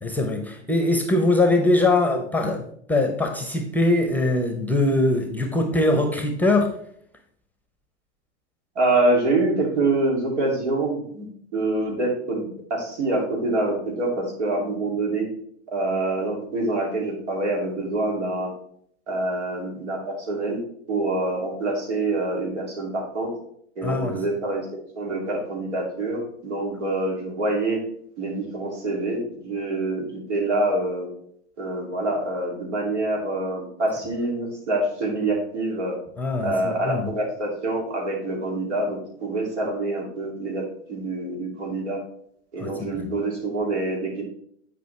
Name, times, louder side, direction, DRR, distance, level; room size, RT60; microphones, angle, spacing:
voice 1, 0.0-6.7 23.8-24.2 36.2-37.1 42.6-43.1, left 2 dB, 5° left, 5 dB, 0.8 m, -22 dB
voice 2, 8.7-11.3 11.5-15.3 15.7-18.5 19.1-20.6 20.9-23.3 23.8-27.8 28.2-31.1 31.6-36.0 36.4-42.0 42.5-44.2, right 2 dB, 75° right, -1 dB, 2.7 m, -26 dB
9.1 x 5.1 x 3.3 m, 0.66 s
hypercardioid pair, 105°, 35 cm